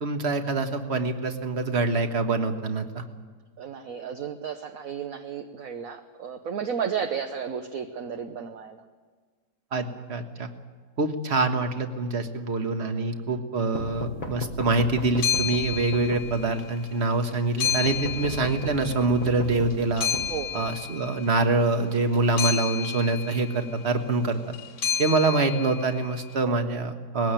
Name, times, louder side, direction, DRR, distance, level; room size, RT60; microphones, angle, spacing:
voice 1, 0.0-3.0 9.7-10.5 11.0-20.1 20.5-24.5 25.0-27.3, right 3 dB, 40° right, 6 dB, 1.6 m, -25 dB
voice 2, 3.6-8.8 20.3-20.7, right 7 dB, 55° right, 6 dB, 1.3 m, -33 dB
sound 1, 13.8-16.7 17.6-21.0, left 2 dB, 30° left, 1.1 m, -37 dB
sound 2, 15.0-16.7 17.0-19.3 19.7-26.2, left 9 dB, 70° left, 1.7 m, -32 dB
20.5 x 16.0 x 9.0 m, 1.5 s
omnidirectional pair, 1.9 m